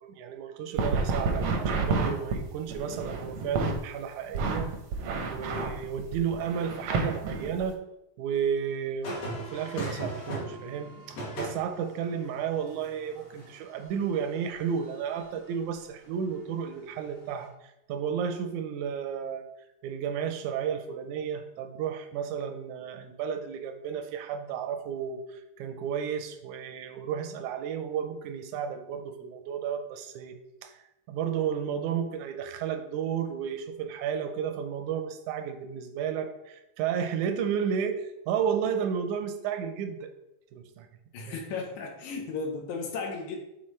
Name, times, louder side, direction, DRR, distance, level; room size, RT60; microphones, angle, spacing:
voice 1, 0.0-4.7 5.3-7.8 8.2-17.5 17.9-19.4 19.8-30.8 31.1-40.1 40.5-40.9 41.3-41.4, right 7 dB, 85° right, 7 dB, 2.1 m, -32 dB
sound 1, 0.8-3.7 4.3-7.7, right 4 dB, 70° right, 1.3 m, -29 dB
sound 2, 9.0-15.4 17.2-17.4, right 1 dB, 65° left, 2.6 m, -40 dB
voice 2, 41.1-43.4, left 4 dB, 80° left, 2 dB, 2.4 m, -35 dB
7.5 x 4.1 x 3.2 m, 0.88 s
omnidirectional pair, 3.3 m